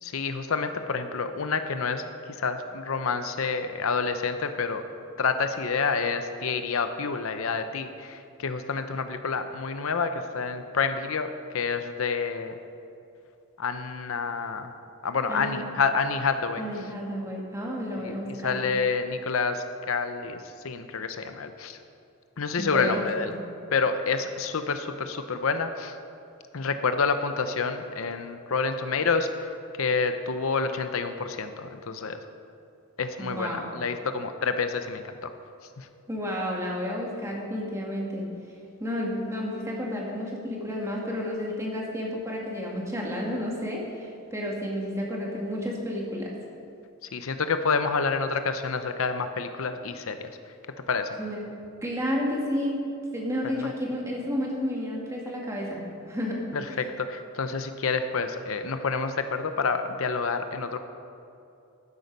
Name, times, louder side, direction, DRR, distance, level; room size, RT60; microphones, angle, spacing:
voice 1, 0.0-2.0 2.4-4.8 5.2-11.3 11.5-12.6 13.6-14.7 15.0-16.6 18.0-21.8 22.4-23.3 23.7-26.0 26.5-29.5 29.8-32.2 33.0-35.0 35.8-35.9 47.1-50.3 50.9-51.2 53.4-53.7 56.5-60.8, left 5 dB, 70° left, 9 dB, 0.7 m, -28 dB
voice 2, 15.3-15.6 16.6-18.6 22.6-23.4 33.2-33.7 36.1-38.3 38.8-46.3 51.2-51.5 51.8-52.9 53.1-55.8 56.1-56.8, equal, 15° right, -2 dB, 1.9 m, -31 dB
12.0 x 9.6 x 5.3 m, 2.6 s
head